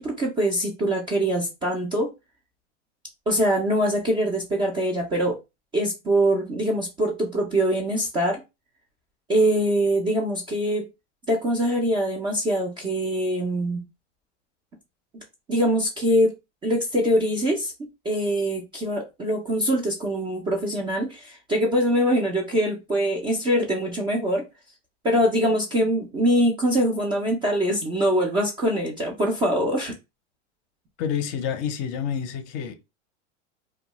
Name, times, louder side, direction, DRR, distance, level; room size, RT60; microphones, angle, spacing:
voice 1, 0.0-2.1 3.3-5.4 5.7-8.4 9.3-10.8 11.3-13.8 15.5-16.3 16.6-17.7 18.1-24.4 25.0-29.9, equal, 15° right, 0.3 m, -23 dB
voice 2, 31.0-32.7, left 8 dB, 40° left, 0.6 m, -28 dB
2.6 x 2.3 x 2.9 m
hypercardioid pair, 125°, 37 cm